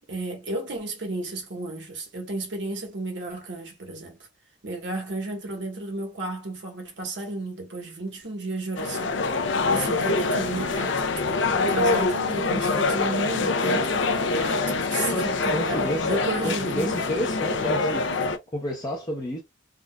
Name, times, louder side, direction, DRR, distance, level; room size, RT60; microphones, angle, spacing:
voice 1, 0.1-4.2 4.6-9.2 9.7-17.2, right 2 dB, 60° right, 1.3 m, -33 dB
sound 1, 8.8-18.4, left 3 dB, 70° left, 0.5 m, -25 dB
voice 2, 15.0-18.1 18.5-19.4, equal, 20° left, 0.7 m, -30 dB
3.7 x 2.5 x 2.2 m
head